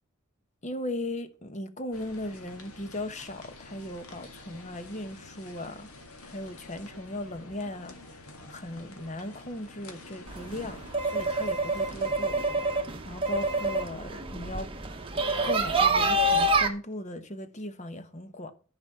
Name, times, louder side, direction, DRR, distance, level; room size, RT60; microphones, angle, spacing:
voice 1, 0.6-5.9 6.2-14.7 15.4-18.5, left 1 dB, 35° left, 1.0 m, -38 dB
sound 1, 1.9-12.1, left 2 dB, 80° left, 1.9 m, -48 dB
sound 2, 10.3-16.7, right 2 dB, 25° right, 1.1 m, -27 dB
13.0 x 5.3 x 5.8 m
head